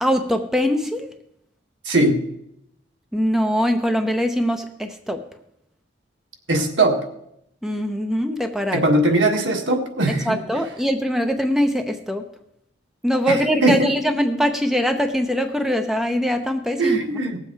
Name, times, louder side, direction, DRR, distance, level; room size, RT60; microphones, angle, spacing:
voice 1, 0.0-1.1 3.1-5.2 7.6-8.8 10.3-12.2 13.0-17.0, equal, ahead, 6 dB, 0.7 m, -22 dB
voice 2, 1.9-2.2 6.5-7.1 8.7-10.4 13.3-13.9 16.8-17.4, right 2 dB, 85° right, 3 dB, 1.7 m, -20 dB
18.5 x 7.4 x 4.6 m, 0.77 s
head